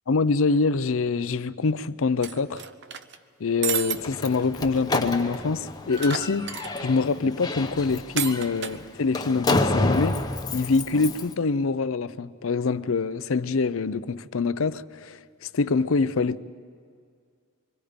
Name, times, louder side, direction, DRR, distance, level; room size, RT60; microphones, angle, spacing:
voice 1, 0.1-2.6 3.4-10.2 10.5-15.2 15.5-16.4, left 4 dB, 65° left, 0.6 m, -25 dB
sound 1, 2.2-3.2 3.6-4.0 4.4-4.5 4.7-4.8 6.0-6.9 8.2-8.8, right 8 dB, 55° right, 0.7 m, -31 dB
Slam, 3.9-11.3, left 2 dB, 20° left, 0.9 m, -29 dB
25.5 x 24.0 x 5.2 m
head